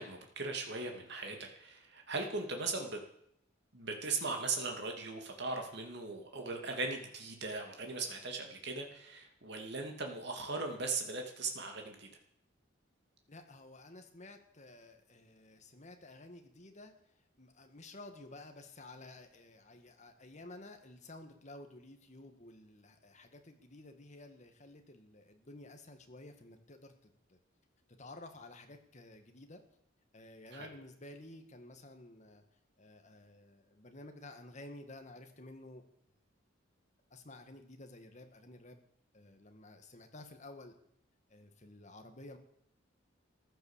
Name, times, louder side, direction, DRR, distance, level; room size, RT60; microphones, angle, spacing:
voice 1, 0.0-3.0 3.7-12.1 30.5-30.7, right 3 dB, 60° right, 3 dB, 2.7 m, -39 dB
voice 2, 13.3-16.9 17.4-27.4 28.0-29.6 30.1-32.4 32.8-35.8 37.1-38.8 39.1-40.8 41.3-42.4, left 2 dB, 35° left, 6 dB, 1.8 m, -52 dB
14.5 x 11.5 x 7.4 m, 0.74 s
head